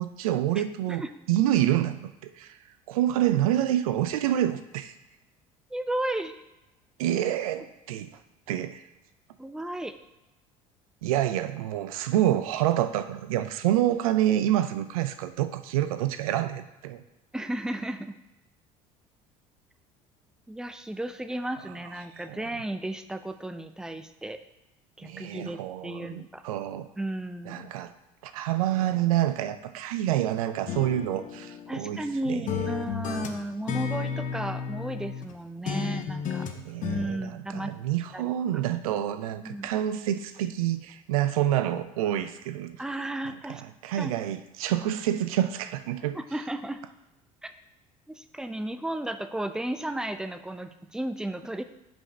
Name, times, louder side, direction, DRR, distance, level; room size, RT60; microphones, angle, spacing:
voice 1, 0.0-2.6 2.9-4.9 7.0-8.1 8.5-8.8 11.0-17.0 22.3-22.5 25.0-26.9 27.5-27.9 28.2-32.5 36.5-42.8 43.5-46.2, right 12 dB, 75° right, 11 dB, 0.5 m, -27 dB
voice 2, 0.6-1.1 5.7-6.4 9.4-9.9 17.3-18.2 20.5-24.4 25.0-26.4 27.0-27.7 31.7-36.5 36.8-37.7 38.1-38.2 39.4-39.7 42.8-43.6 44.0-44.1 46.1-46.8 47.4-47.5 48.1-51.6, right 1 dB, 5° right, 9 dB, 0.6 m, -34 dB
sound 1, 30.7-32.1 32.5-35.3 35.7-37.1, left 6 dB, 45° left, 0.9 m, -33 dB
6.3 x 5.1 x 5.3 m, 0.97 s
hypercardioid pair, 65°, 18 cm